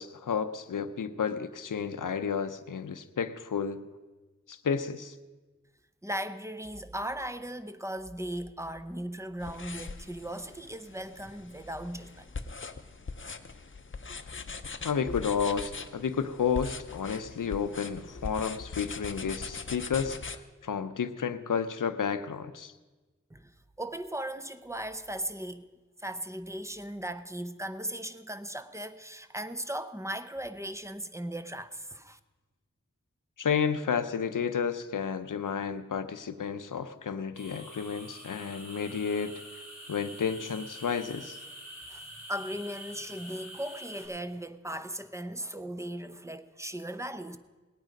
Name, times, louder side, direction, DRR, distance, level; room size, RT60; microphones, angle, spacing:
voice 1, 0.0-3.9 4.5-5.1 14.8-20.2 20.6-22.7 33.4-39.3 39.9-41.4, left 6 dB, 90° left, 0.6 m, -31 dB
voice 2, 6.0-12.3 23.3-25.7 26.0-32.2 41.9-47.4, right 1 dB, 10° right, 0.7 m, -38 dB
sound 1, 9.4-20.4, left 4 dB, 40° left, 0.7 m, -41 dB
sound 2, 37.4-44.1, equal, 60° right, 4.1 m, -46 dB
19.0 x 9.0 x 5.2 m
wide cardioid pair, 75°, 31 cm